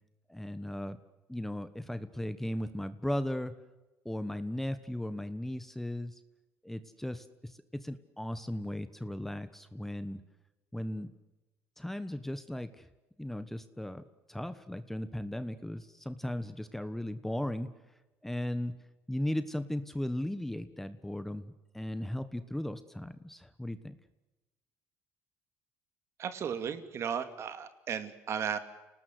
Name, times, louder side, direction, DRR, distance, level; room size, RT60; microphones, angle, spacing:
voice 1, 0.3-1.0 1.3-3.5 4.0-6.2 6.6-10.2 10.7-11.1 11.8-12.9 13.2-14.0 14.3-17.7 18.2-18.7 19.1-24.0, left 1 dB, 5° left, 12 dB, 1.3 m, -36 dB
voice 2, 26.2-28.6, right 7 dB, 50° right, 10 dB, 2.6 m, -35 dB
29.5 x 19.5 x 8.0 m, 1.1 s
cardioid pair, 110°, 6 cm